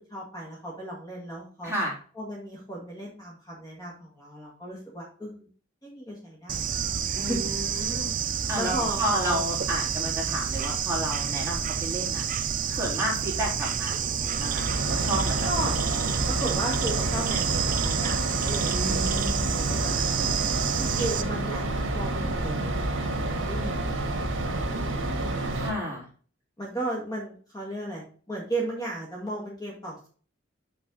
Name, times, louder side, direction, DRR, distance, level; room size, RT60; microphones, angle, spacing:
voice 1, 0.1-1.7 2.1-5.5 5.8-6.6 7.3-7.4 8.5-9.5 15.4-15.8 16.3-19.2 19.5-25.1 26.6-30.1, right 1 dB, 20° left, -2 dB, 1.8 m, -35 dB
Bird / Insect, 6.5-21.2, right 7 dB, 45° right, 0.6 m, -29 dB
voice 2, 7.1-8.1 8.5-12.2 12.8-15.5 18.7-19.5 25.5-26.1, equal, 15° right, -4 dB, 3.2 m, -31 dB
sound 1, 14.3-25.7, right 2 dB, 65° right, 1.7 m, -29 dB
6.4 x 5.6 x 3.8 m, 0.42 s
head